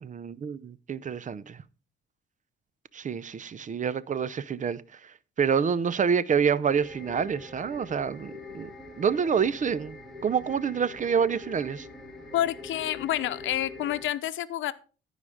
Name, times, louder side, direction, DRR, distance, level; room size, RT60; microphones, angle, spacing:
voice 1, 0.0-1.6 2.9-4.8 5.4-8.7 9.0-10.0 10.2-11.9, right 6 dB, 40° right, 0.6 m, -27 dB
sound 1, 6.7-14.0, left 3 dB, ahead, 4.8 m, -44 dB
voice 2, 12.3-14.7, left 12 dB, 80° left, 0.8 m, -28 dB
14.5 x 5.0 x 4.9 m
cardioid pair, 90°, 20 cm